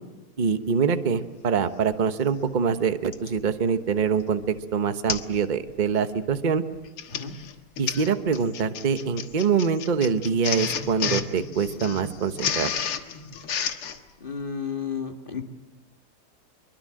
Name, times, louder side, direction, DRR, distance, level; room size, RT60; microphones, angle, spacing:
voice 1, 0.4-6.6 7.8-12.7, right 6 dB, 30° right, 9 dB, 0.9 m, -24 dB
Printer, 1.9-2.0 3.1-3.4 4.0-4.2 4.5-4.6 5.1-5.4 5.7-6.0 6.7-14.0, left 7 dB, 80° left, 2.3 m, -31 dB
voice 2, 14.2-15.4, left 6 dB, 25° left, 5 dB, 1.7 m, -32 dB
25.0 x 23.5 x 7.7 m, 1.1 s
omnidirectional pair, 2.3 m